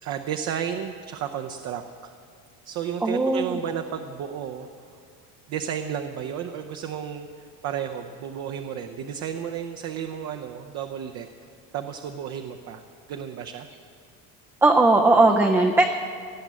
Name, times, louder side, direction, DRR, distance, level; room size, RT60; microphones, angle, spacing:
voice 1, 0.0-2.1 2.6-4.7 5.5-11.3 11.7-12.8 13.1-13.7, right 8 dB, 55° right, 4 dB, 0.7 m, -32 dB
voice 2, 3.0-3.6 14.6-15.8, right 2 dB, 5° right, 2 dB, 0.4 m, -18 dB
18.5 x 7.4 x 8.2 m, 2.4 s
cardioid pair, 170°, 33 cm